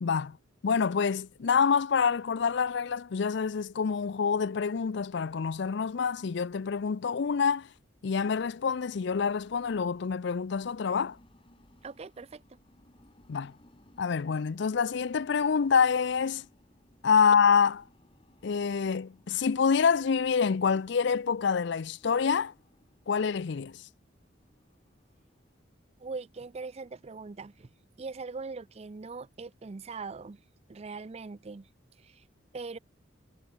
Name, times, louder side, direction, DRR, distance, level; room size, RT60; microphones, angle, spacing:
voice 1, 0.0-0.4 0.6-7.7 8.0-11.2 13.3-13.5 14.0-16.5 17.0-17.8 18.4-22.5 23.1-23.9, left 6 dB, 60° left, 0.5 m, -27 dB
sound 1, 8.3-27.0, left 1 dB, 30° left, 2.9 m, -63 dB
voice 2, 11.8-12.6 26.0-27.7 28.0-30.4 30.7-31.7 32.0-32.2 32.5-32.8, right 4 dB, 30° right, 0.4 m, -41 dB
head